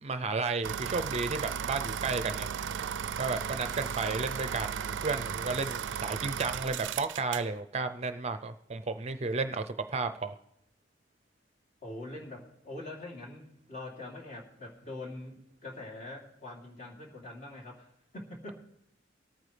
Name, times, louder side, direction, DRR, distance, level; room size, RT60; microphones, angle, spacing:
voice 1, 0.0-2.5 3.2-10.3, right 4 dB, 35° right, 9 dB, 0.5 m, -33 dB
sound 1, 0.6-7.5, right 8 dB, 85° right, 0.4 m, -35 dB
voice 2, 11.8-18.5, left 2 dB, 45° left, -1 dB, 2.9 m, -44 dB
23.5 x 9.1 x 3.3 m, 0.82 s
head